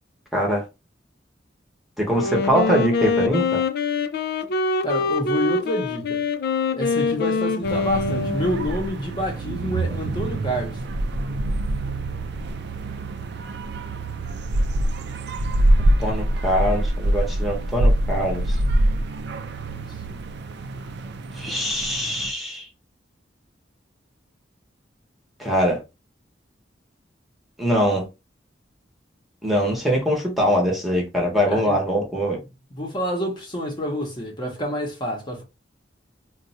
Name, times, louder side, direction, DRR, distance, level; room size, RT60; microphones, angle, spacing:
voice 1, 0.3-0.6 2.0-3.6 16.0-18.6 21.4-22.7 25.4-25.8 27.6-28.0 29.4-32.4, equal, ahead, 1.0 m, -22 dB
Wind instrument woodwind instrument, 2.1-8.9, left 4 dB, 60° left, 0.4 m, -24 dB
voice 2, 4.8-6.2 6.7-10.8 19.7-20.2 31.5-31.8 32.7-35.4, equal, 25° left, 0.9 m, -28 dB
sound 1, 7.6-22.3, right 1 dB, 65° right, 0.5 m, -25 dB
2.6 x 2.3 x 4.0 m
head